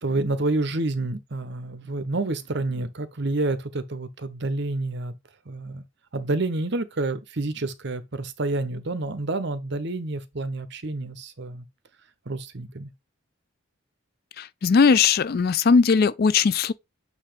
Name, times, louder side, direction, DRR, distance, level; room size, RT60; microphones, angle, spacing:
voice 1, 0.0-5.2 5.5-5.8 6.1-11.6 12.3-12.9, right 2 dB, 55° right, 0.9 m, -28 dB
voice 2, 14.4-16.7, left 5 dB, 45° left, 0.4 m, -19 dB
8.2 x 2.7 x 5.0 m
head